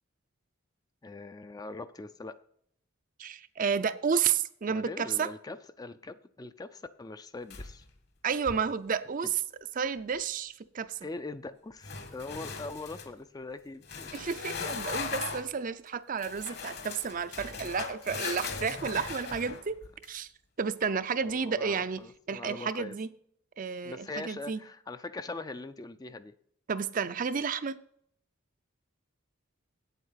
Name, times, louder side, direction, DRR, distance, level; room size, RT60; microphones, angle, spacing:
voice 1, 1.0-2.4 4.7-7.8 9.2-9.3 11.0-14.2 16.6-16.9 17.5-17.7 21.2-22.9 23.8-26.4, left 3 dB, 20° left, 12 dB, 0.4 m, -42 dB
voice 2, 3.2-5.3 8.2-9.4 9.8-11.0 14.1-19.8 20.1-20.3 20.6-22.0 22.3-23.1 23.6-24.6 26.7-27.8, right 6 dB, 40° right, 13 dB, 0.5 m, -31 dB
sound 1, 7.5-8.0 8.3-8.7 11.8-13.1 13.8-15.5 16.2-20.1, left 5 dB, 50° left, 1.4 m, -38 dB
8.5 x 8.1 x 5.7 m, 0.67 s
head